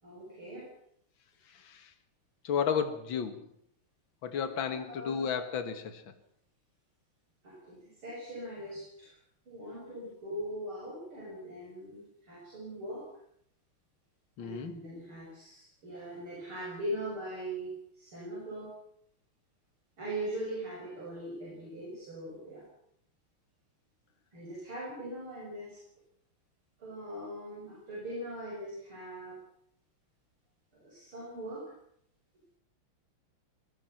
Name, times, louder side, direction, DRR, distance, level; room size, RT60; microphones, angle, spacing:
voice 1, 0.0-0.7 4.7-5.4 7.4-9.2 9.5-13.1 14.4-18.7 20.0-22.7 24.3-25.8 26.8-29.4 30.8-31.7, right 1 dB, 80° right, -4 dB, 8.0 m, -41 dB
voice 2, 1.5-1.9 2.4-3.5 4.2-6.2 14.4-14.8, left 7 dB, 65° left, 10 dB, 2.4 m, -33 dB
21.5 x 21.5 x 6.0 m, 0.70 s
omnidirectional pair, 2.3 m